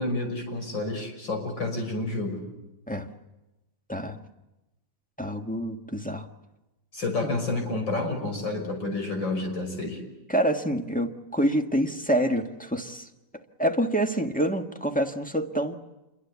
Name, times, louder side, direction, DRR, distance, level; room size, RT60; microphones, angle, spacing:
voice 1, 0.0-2.4 6.9-10.0, left 2 dB, 80° left, 4 dB, 6.6 m, -29 dB
voice 2, 3.9-4.2 5.2-6.3 7.2-7.3 10.3-13.1 13.6-15.8, right 1 dB, 5° left, 3 dB, 1.3 m, -27 dB
28.0 x 22.5 x 8.3 m, 0.99 s
omnidirectional pair, 2.0 m